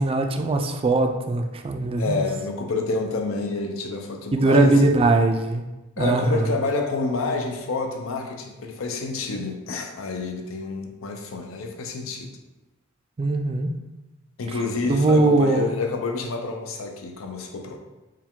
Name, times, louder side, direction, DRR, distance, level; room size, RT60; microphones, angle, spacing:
voice 1, 0.0-2.2 4.3-5.6 6.0-6.5 13.2-13.8 14.9-15.7, right 2 dB, 25° right, 5 dB, 0.3 m, -20 dB
voice 2, 2.0-4.9 6.0-12.3 14.4-17.8, left 3 dB, 75° left, 4 dB, 0.5 m, -28 dB
4.7 x 2.3 x 3.6 m, 1.1 s
head